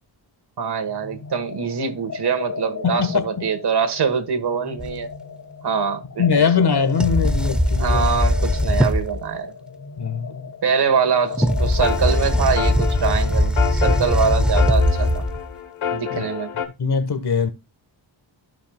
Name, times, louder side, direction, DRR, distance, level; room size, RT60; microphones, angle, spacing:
voice 1, 0.6-5.1 5.6-6.4 7.8-9.5 10.6-15.2 15.9-16.5, right 6 dB, 55° right, 1.6 m, -23 dB
sound 1, 0.9-14.4, left 6 dB, 40° left, 1.8 m, -36 dB
voice 2, 2.8-3.4 6.2-8.1 10.0-10.5 16.1-16.2 16.8-17.5, left 6 dB, 55° left, 1.4 m, -21 dB
sound 2, 4.8-4.9 7.0-9.2 11.3-15.5, left 1 dB, ahead, 0.6 m, -20 dB
sound 3, 11.6-16.7, left 8 dB, 90° left, 1.4 m, -29 dB
14.5 x 5.1 x 2.3 m
cardioid pair, 85°, 46 cm